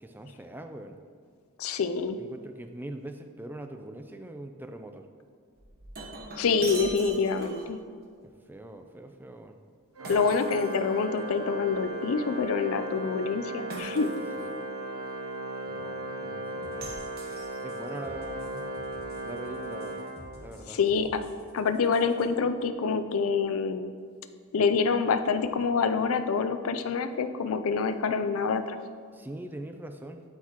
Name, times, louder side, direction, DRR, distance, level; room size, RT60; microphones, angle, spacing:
voice 1, 0.0-1.0 2.2-5.1 8.5-9.6 14.4-14.5 15.7-16.9 17.6-18.7 19.2-20.0 20.4-20.8 29.1-30.2, right 1 dB, 10° right, 6 dB, 0.3 m, -42 dB
voice 2, 1.6-2.2 6.4-7.8 10.1-14.1 20.7-21.2 21.5-23.9 24.5-28.8, left 5 dB, 70° left, 9 dB, 0.4 m, -26 dB
Shatter, 5.6-7.8 10.0-11.3 13.7-14.5 16.8-17.9, right 3 dB, 45° right, 1.0 m, -42 dB
Organ, 10.0-20.8, right 1 dB, 85° right, 0.9 m, -37 dB
sound 1, 16.6-22.2, equal, 45° left, 1.9 m, -50 dB
11.5 x 4.6 x 2.9 m, 2.1 s
head